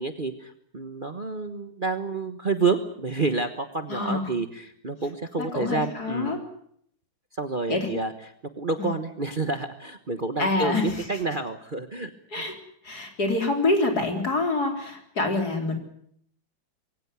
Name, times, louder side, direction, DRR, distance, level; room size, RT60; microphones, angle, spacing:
voice 1, 0.0-6.4 7.4-8.1 8.6-12.4, right 3 dB, 30° right, 8 dB, 1.3 m, -29 dB
voice 2, 3.9-4.3 5.4-6.4 7.7-7.9 8.8-8.9 10.4-11.0 12.3-12.6 12.8-15.7, left 2 dB, 55° left, 4 dB, 4.4 m, -26 dB
22.5 x 17.0 x 9.5 m, 0.68 s
omnidirectional pair, 2.0 m